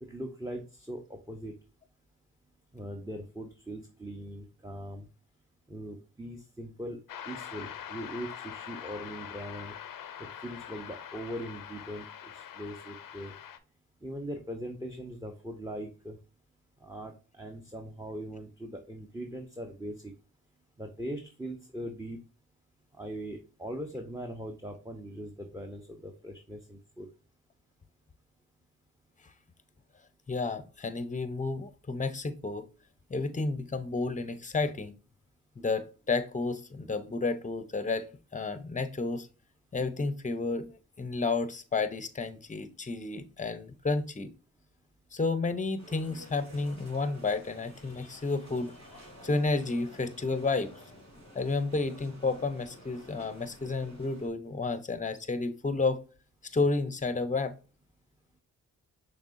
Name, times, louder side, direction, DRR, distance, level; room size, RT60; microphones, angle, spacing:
voice 1, 0.0-1.5 2.7-5.1 5.7-7.0 7.3-9.8 10.2-12.1 12.3-13.3 14.0-16.2 16.8-20.1 20.8-22.2 23.0-27.1, right 1 dB, 10° right, 0.9 m, -40 dB
sound 1, 7.1-13.6, left 9 dB, 65° left, 0.6 m, -44 dB
voice 2, 30.3-32.6 33.1-34.9 35.6-38.0 38.3-39.3 39.7-44.3 45.1-48.7 49.2-50.7 51.3-56.0 56.5-57.5, left 3 dB, 20° left, 0.8 m, -31 dB
sound 2, 45.8-54.3, equal, 45° right, 2.7 m, -52 dB
6.0 x 3.4 x 2.6 m
supercardioid pair, 40°, 36 cm